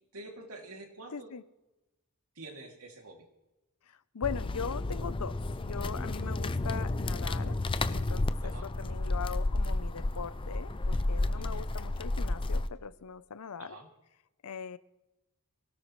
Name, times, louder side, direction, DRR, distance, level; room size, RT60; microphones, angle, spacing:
voice 1, 0.1-1.3 2.3-3.2 8.4-8.7 11.4-11.6 13.6-13.9, right 2 dB, 75° right, 2.7 m, -47 dB
voice 2, 1.1-1.4 3.9-7.6 7.9-13.8 14.4-14.8, left 6 dB, 85° left, 0.7 m, -40 dB
sound 1, 4.2-12.7, left 2 dB, 25° left, 0.5 m, -32 dB
24.5 x 17.5 x 3.2 m
head